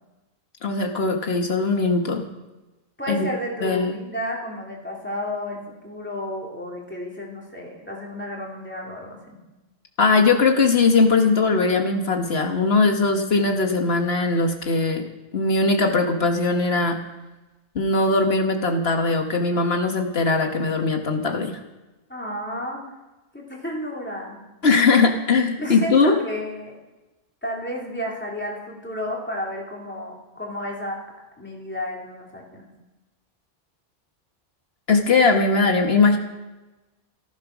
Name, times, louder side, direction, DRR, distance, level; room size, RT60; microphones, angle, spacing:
voice 1, 0.6-2.2 3.1-3.3 3.6-3.9 10.0-15.1 15.3-17.0 17.7-21.6 24.6-26.2 34.9-36.2, left 3 dB, 80° left, 4 dB, 1.6 m, -20 dB
voice 2, 3.0-9.2 22.1-22.8 23.3-24.4 25.5-26.7 27.4-31.0 31.4-32.7, left 1 dB, 10° left, -3 dB, 3.4 m, -32 dB
14.5 x 14.5 x 6.1 m, 1.1 s
omnidirectional pair, 1.0 m